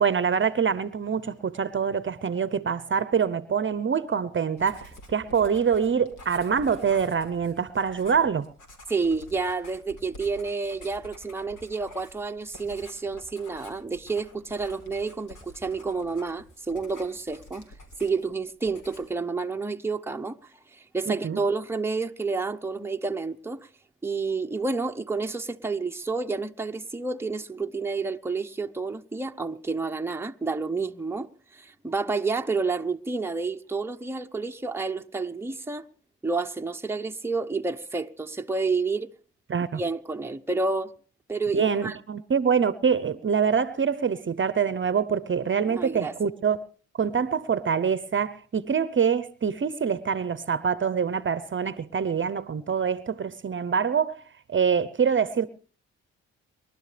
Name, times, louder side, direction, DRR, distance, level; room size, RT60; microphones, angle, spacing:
voice 1, 0.0-8.5 21.1-21.4 39.5-39.8 41.5-46.6 47.0-54.2 54.5-55.5, right 6 dB, 40° right, 0.8 m, -25 dB
Writing, 4.6-18.4 18.6-19.2, left 1 dB, 75° left, 4.1 m, -49 dB
voice 2, 8.9-17.7 18.0-20.4 20.7-23.7 24.0-35.8 36.2-39.1 39.7-40.9 41.3-42.0 45.7-46.1, right 4 dB, 10° right, 0.9 m, -30 dB
28.0 x 12.0 x 3.4 m
supercardioid pair, 50°, 31 cm